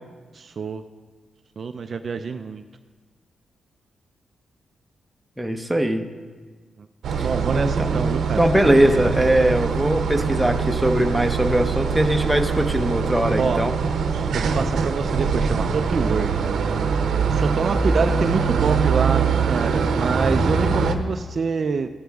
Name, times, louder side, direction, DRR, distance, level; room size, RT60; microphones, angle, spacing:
voice 1, 0.3-0.8 1.6-2.6 6.8-6.9 7.2-9.1 13.4-13.7 14.3-16.3 17.3-21.9, right 5 dB, 45° right, 8 dB, 0.4 m, -26 dB
voice 2, 5.4-6.0 7.2-7.3 7.5-13.7, right 1 dB, 5° right, 4 dB, 0.8 m, -21 dB
sound 1, 7.0-20.9, right 5 dB, 80° right, 0.8 m, -23 dB
sound 2, 8.2-20.1, left 2 dB, 55° left, 3.7 m, -41 dB
15.5 x 9.2 x 3.5 m, 1.4 s
cardioid pair, 120°, 0 cm